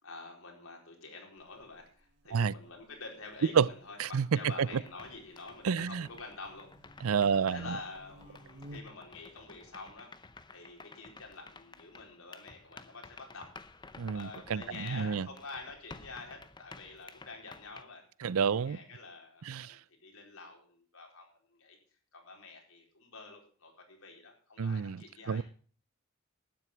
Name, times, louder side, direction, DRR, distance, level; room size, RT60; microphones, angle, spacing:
voice 1, 0.0-10.1 10.5-13.8 14.1-18.0 18.5-21.8 22.1-25.4, left 3 dB, 85° left, 4.3 m, -48 dB
Buzz, 1.4-9.2, equal, 55° right, 1.4 m, -57 dB
sound 1, 4.7-17.8, left 3 dB, 20° left, 0.7 m, -53 dB
voice 2, 5.6-6.1 7.0-7.8 14.0-15.3 18.2-18.8 19.4-19.8 24.6-25.0 25.3-25.4, right 6 dB, 85° right, 0.5 m, -29 dB
12.0 x 9.9 x 6.0 m
head